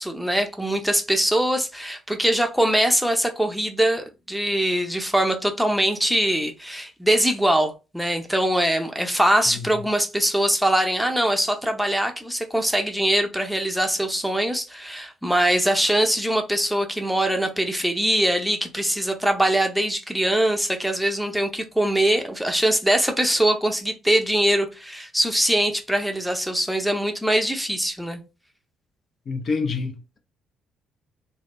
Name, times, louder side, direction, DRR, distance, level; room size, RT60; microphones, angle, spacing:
voice 1, 0.0-28.2, right 1 dB, ahead, 0.6 m, -22 dB
voice 2, 29.3-30.2, left 4 dB, 45° left, 0.5 m, -27 dB
2.3 x 2.0 x 3.5 m
figure-of-eight pair, 45°, 0 cm